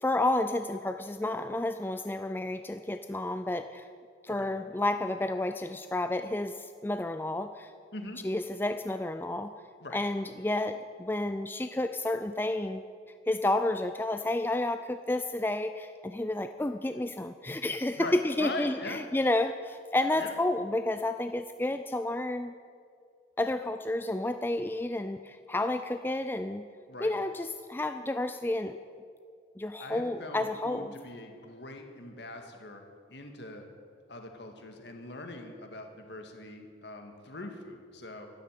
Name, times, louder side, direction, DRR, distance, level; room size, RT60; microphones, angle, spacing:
voice 1, 0.0-3.9 4.2-7.7 8.2-9.5 9.9-12.8 13.3-22.5 23.4-26.7 27.0-28.8 29.6-30.9, left 2 dB, 10° left, 9 dB, 0.4 m, -31 dB
voice 2, 18.0-19.0 20.2-20.4 26.9-27.1 29.8-32.8 33.1-33.6 34.1-38.3, left 2 dB, 65° left, 4 dB, 2.0 m, -41 dB
12.5 x 12.0 x 9.4 m, 2.2 s
head